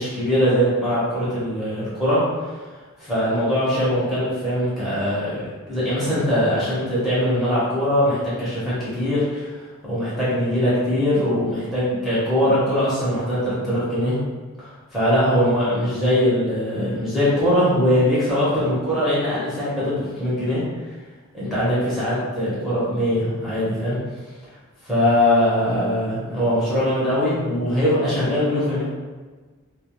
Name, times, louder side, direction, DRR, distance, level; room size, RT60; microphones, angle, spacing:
voice 1, 0.0-2.5 3.0-9.5 9.9-14.2 14.6-20.6 21.3-24.0 24.8-28.8, equal, ahead, -11 dB, 1.0 m, -21 dB
2.3 x 2.3 x 3.0 m, 1.4 s
head